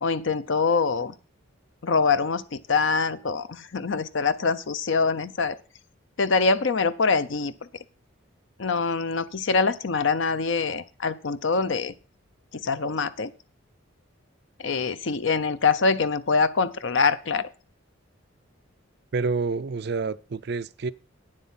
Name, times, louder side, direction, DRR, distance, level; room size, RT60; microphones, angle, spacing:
voice 1, 0.0-1.1 1.8-5.6 6.2-7.5 8.6-11.9 12.6-13.3 14.6-17.5, left 4 dB, 60° left, 0.6 m, -24 dB
voice 2, 19.1-20.9, right 4 dB, 50° right, 0.4 m, -28 dB
9.5 x 7.7 x 5.6 m
head